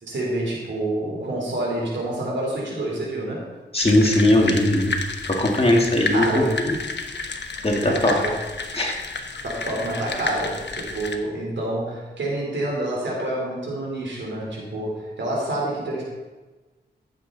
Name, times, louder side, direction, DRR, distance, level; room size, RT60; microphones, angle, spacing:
voice 1, 0.0-3.5 6.1-6.5 7.7-8.4 9.4-16.0, right 1 dB, 85° right, -3 dB, 3.8 m, -27 dB
voice 2, 3.7-4.9 5.4-6.7 7.6-8.1 8.7-8.9, left 1 dB, 30° left, 0 dB, 2.2 m, -19 dB
sound 1, 3.8-11.2, left 4 dB, 70° left, 1.0 m, -31 dB
14.5 x 7.4 x 4.1 m, 1.2 s
wide cardioid pair, 75°, 19 cm